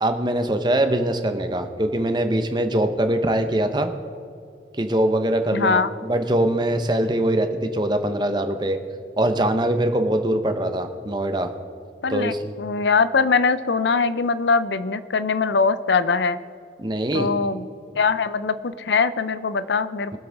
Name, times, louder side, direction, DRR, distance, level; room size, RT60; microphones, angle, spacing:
voice 1, 0.0-3.9 4.8-8.8 9.2-11.5 12.1-12.4 16.8-17.3, right 1 dB, 25° right, 7 dB, 0.8 m, -22 dB
voice 2, 5.5-5.9 12.0-16.4 17.1-17.7 18.0-20.2, left 4 dB, 80° left, 14 dB, 0.6 m, -22 dB
23.0 x 7.8 x 3.5 m, 2.5 s
head